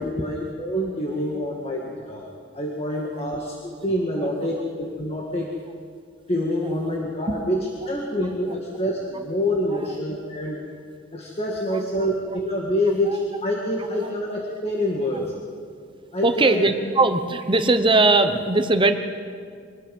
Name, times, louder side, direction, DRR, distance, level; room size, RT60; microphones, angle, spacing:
voice 1, 0.0-2.3 2.5-3.5 3.8-5.5 6.3-10.6 11.1-15.3 16.1-16.6, left 1 dB, 30° left, -1 dB, 2.0 m, -26 dB
voice 2, 2.9-3.3 4.2-4.6 5.4-5.5 6.6-7.0 7.3-7.4 8.2-8.6 9.1-9.2 9.7-10.0 11.7-12.4 12.9-13.4 13.8-14.1 15.1-15.3 16.2-18.9, right 2 dB, 25° right, 8 dB, 1.1 m, -23 dB
24.5 x 20.0 x 5.5 m, 2.2 s
head